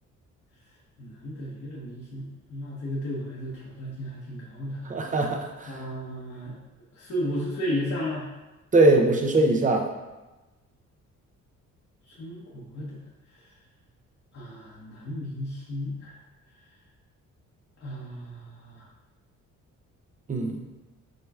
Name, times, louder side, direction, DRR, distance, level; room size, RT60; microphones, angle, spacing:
voice 1, 1.0-4.9 5.7-6.6 6.9-8.3 12.1-13.0 14.3-16.2 17.8-18.9, equal, 50° left, -7 dB, 1.1 m, -34 dB
voice 2, 4.9-5.7 8.7-9.9 20.3-20.6, right 2 dB, 25° right, 2 dB, 0.7 m, -21 dB
6.2 x 3.0 x 2.4 m, 1.1 s
cardioid pair, 90°, 30 cm